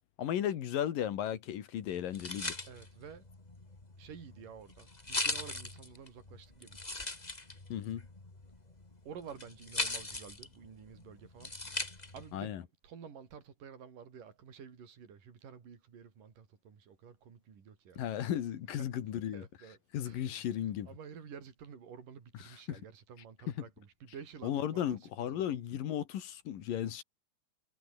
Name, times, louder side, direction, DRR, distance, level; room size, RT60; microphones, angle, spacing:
voice 1, 0.2-2.6 7.7-8.1 12.3-12.6 18.0-19.4 19.9-20.9 22.7-22.8 24.4-27.0, left 10 dB, 75° left, 3.5 m, -35 dB
sound 1, 1.9-12.3, left 2 dB, 15° left, 2.0 m, -40 dB
voice 2, 2.7-3.3 4.0-6.8 9.1-11.6 12.1-12.6 12.8-18.0 18.8-18.9 19.3-20.5 20.9-25.5, right 7 dB, 70° right, 5.3 m, -51 dB
omnidirectional pair, 4.0 m